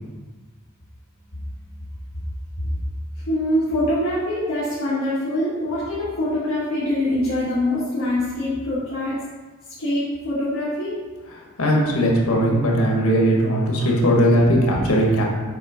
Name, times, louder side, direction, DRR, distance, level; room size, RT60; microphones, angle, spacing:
voice 1, 3.3-9.2 9.8-11.0, left 1 dB, 65° left, -11 dB, 1.8 m, -24 dB
voice 2, 11.6-15.2, equal, 85° left, -1 dB, 1.5 m, -18 dB
7.7 x 3.5 x 5.1 m, 1.3 s
head